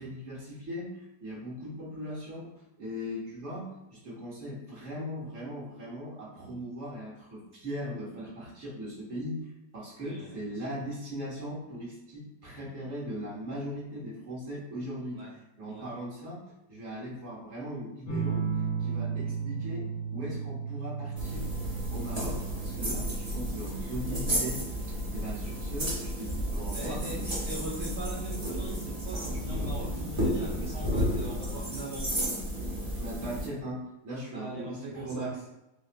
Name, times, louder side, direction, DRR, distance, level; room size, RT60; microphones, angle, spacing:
voice 1, 0.0-2.5 2.8-15.2 15.6-16.4 16.7-18.4 18.8-21.5 21.9-24.6 24.9-27.4 33.0-35.4, equal, 40° right, -7 dB, 1.3 m, -39 dB
voice 2, 10.0-10.8 15.1-15.3 15.7-15.8 26.7-27.2 27.5-32.4 34.3-35.3, right 2 dB, 70° right, -4 dB, 1.0 m, -41 dB
sound 1, 18.1-27.2 28.6-29.2, right 6 dB, 80° left, 1.6 m, -36 dB
sound 2, 21.2-33.5, equal, 25° right, 0.9 m, -32 dB
6.6 x 2.3 x 2.2 m, 0.94 s
omnidirectional pair, 2.3 m